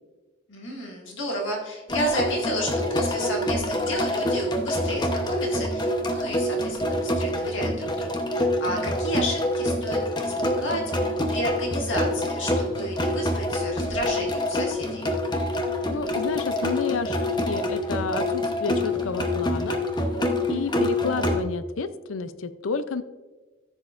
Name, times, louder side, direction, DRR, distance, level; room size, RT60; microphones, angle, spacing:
voice 1, 0.5-15.1, equal, 65° left, -1 dB, 2.0 m, -32 dB
sound 1, 1.9-21.4, left 1 dB, 20° left, 0.9 m, -26 dB
voice 2, 15.9-19.8 20.5-23.0, left 4 dB, 80° left, 12 dB, 0.5 m, -30 dB
14.0 x 7.4 x 2.5 m, 1.2 s
head